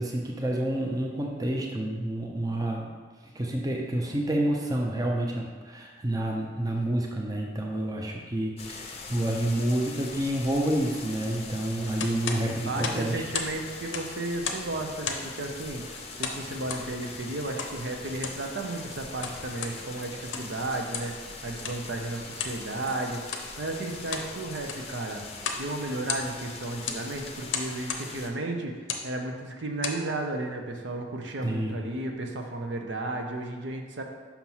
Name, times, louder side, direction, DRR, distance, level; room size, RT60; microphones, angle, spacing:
voice 1, 0.0-2.9 3.2-13.2 31.4-31.8, right 1 dB, 20° right, 0 dB, 0.5 m, -29 dB
sound 1, 8.6-28.3, left 4 dB, 35° left, 0.5 m, -42 dB
sound 2, 12.0-13.6 13.8-14.7 15.0-15.4 16.2-16.9 17.6-17.8 18.1-18.4 19.0-19.8 20.2-20.6 20.9-21.2 21.6-21.8 22.4-22.6 23.2-23.5 23.9-24.3 24.6-24.9 25.4-25.7 25.9-26.5 26.9-27.0 27.5-28.1 28.8-29.1 29.6-30.0, left 6 dB, 90° left, 0.6 m, -34 dB
voice 2, 12.6-21.1 21.4-25.2 25.6-28.8 29.0-34.0, right 2 dB, 75° right, 2 dB, 0.7 m, -33 dB
5.7 x 3.0 x 5.5 m, 1.4 s
head